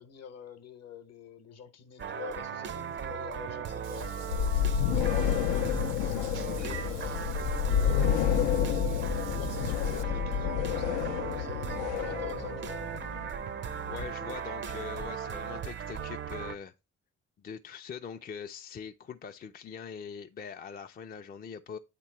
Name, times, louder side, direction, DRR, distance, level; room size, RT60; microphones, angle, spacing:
voice 1, 0.0-12.8, left 8 dB, 55° left, 0.9 m, -47 dB
sound 1, 2.0-16.6, right 7 dB, 40° right, 0.5 m, -37 dB
Meow / Water / Bathtub (filling or washing), 3.8-10.0, right 9 dB, 80° right, 0.7 m, -49 dB
sound 2, 4.3-14.1, left 9 dB, 85° left, 0.5 m, -29 dB
voice 2, 13.9-16.7 17.4-21.8, left 6 dB, 30° left, 0.4 m, -42 dB
8.2 x 3.0 x 4.4 m
cardioid pair, 90°, 30 cm